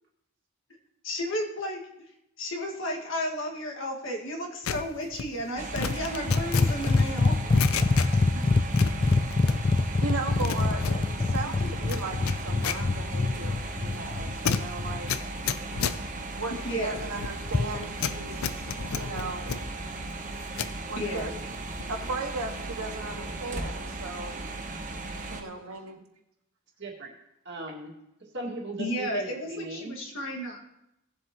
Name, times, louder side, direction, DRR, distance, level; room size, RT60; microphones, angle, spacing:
voice 1, 1.0-1.8 2.4-7.3 8.0-8.1 16.6-17.0 21.0-21.3 25.1-25.4 28.8-30.6, equal, 60° left, 0 dB, 1.8 m, -33 dB
sound 1, 4.6-8.4 8.7-9.9 10.2-20.8 21.2-22.0 22.3-22.6, left 7 dB, 75° left, 0.5 m, -34 dB
sound 2, 5.6-25.4, right 2 dB, 35° right, 1.0 m, -37 dB
sound 3, 6.3-15.1 17.5-17.8, left 3 dB, 25° left, 0.3 m, -25 dB
voice 2, 7.9-8.5 10.0-15.2 16.3-18.7 18.9-19.6 20.9-21.3 21.9-24.4 25.3-26.0, right 3 dB, 80° right, 2 dB, 1.6 m, -37 dB
voice 3, 26.8-27.1 27.5-27.9 28.3-29.9, right 2 dB, 50° right, -1 dB, 2.0 m, -37 dB
17.5 x 7.7 x 2.9 m, 0.83 s
head